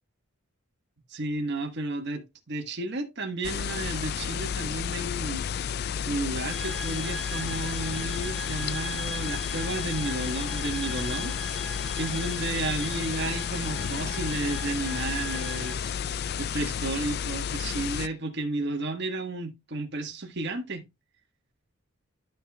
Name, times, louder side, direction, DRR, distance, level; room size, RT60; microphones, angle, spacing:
voice 1, 1.1-5.7 6.1-11.4 11.6-20.8, right 2 dB, 50° right, 1.5 m, -33 dB
sound 1, 3.4-18.1, left 7 dB, 50° left, 0.3 m, -32 dB
sound 2, 6.5-15.8, right 1 dB, ahead, 0.8 m, -40 dB
12.5 x 5.6 x 2.3 m
head